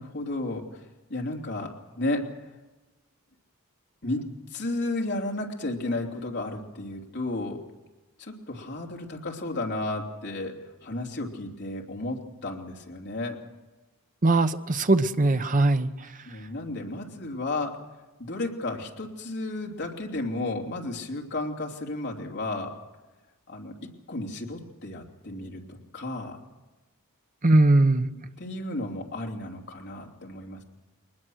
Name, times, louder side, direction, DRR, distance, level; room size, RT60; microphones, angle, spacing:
voice 1, 0.0-2.6 4.0-4.2 4.5-7.6 8.2-13.4 16.2-17.8 18.2-22.8 23.5-26.4 28.4-30.6, left 2 dB, 55° left, 1 dB, 3.0 m, -33 dB
voice 2, 14.2-15.9 27.4-28.1, right 2 dB, 40° right, 9 dB, 0.9 m, -20 dB
23.0 x 20.0 x 6.4 m, 1.2 s
head